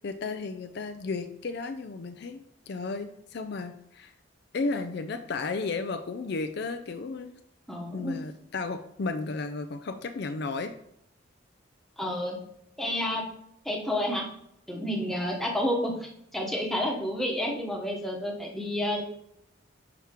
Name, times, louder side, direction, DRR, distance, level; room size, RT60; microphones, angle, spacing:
voice 1, 0.0-4.1 4.5-7.3 7.9-10.7, left 3 dB, 55° left, 8 dB, 0.4 m, -33 dB
voice 2, 7.7-8.2 12.0-12.4 12.8-13.2 13.6-14.3 14.7-19.0, left 1 dB, ahead, -1 dB, 1.1 m, -30 dB
5.8 x 5.8 x 3.7 m, 0.76 s
head